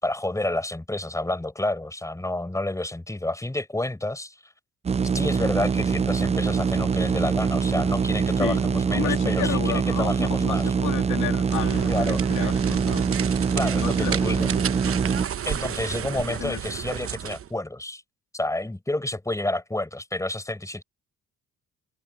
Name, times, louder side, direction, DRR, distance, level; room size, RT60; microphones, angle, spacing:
voice 1, 0.0-4.4 5.1-10.7 11.9-12.2 13.6-14.5 15.4-18.0 18.3-20.8, left 1 dB, 10° left, 4.9 m, -29 dB
sound 1, 4.8-15.3, right 6 dB, 20° right, 0.4 m, -24 dB
voice 2, 8.9-13.1 13.7-14.6 14.8-15.0 16.1-16.6, left 14 dB, 90° left, 2.4 m, -32 dB
sound 2, 11.4-17.5, right 9 dB, 45° right, 1.0 m, -32 dB
open air
cardioid pair, 90°, 30 cm